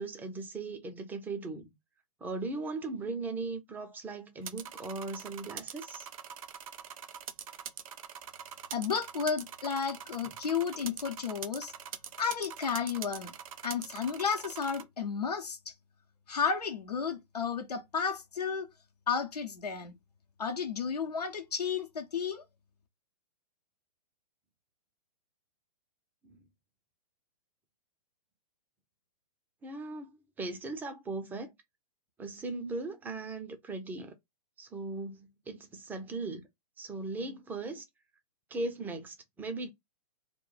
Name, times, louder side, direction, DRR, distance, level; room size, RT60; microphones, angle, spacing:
voice 1, 0.0-1.7 2.2-6.1 26.2-26.4 29.6-31.5 32.2-34.1 34.6-36.4 36.8-37.9 38.5-39.7, right 3 dB, 10° right, 0.4 m, -38 dB
sound 1, 4.4-14.8, right 8 dB, 60° right, 0.5 m, -44 dB
voice 2, 8.7-11.7 12.2-13.3 13.6-15.7 16.3-18.7 19.1-19.9 20.4-22.4, left 6 dB, 85° left, 0.7 m, -32 dB
2.3 x 2.1 x 3.8 m
hypercardioid pair, 120°, 20 cm